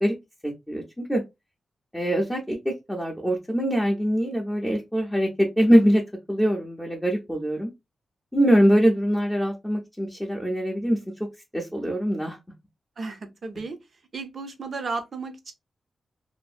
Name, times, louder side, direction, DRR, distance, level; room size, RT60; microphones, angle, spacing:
voice 1, 0.4-1.2 1.9-6.0 6.3-7.7 8.3-11.3 11.5-12.4, equal, 5° left, 0.5 m, -23 dB
voice 2, 13.0-13.8 14.1-15.5, right 4 dB, 45° right, 0.5 m, -34 dB
2.6 x 2.5 x 2.4 m
wide cardioid pair, 155°, 0 cm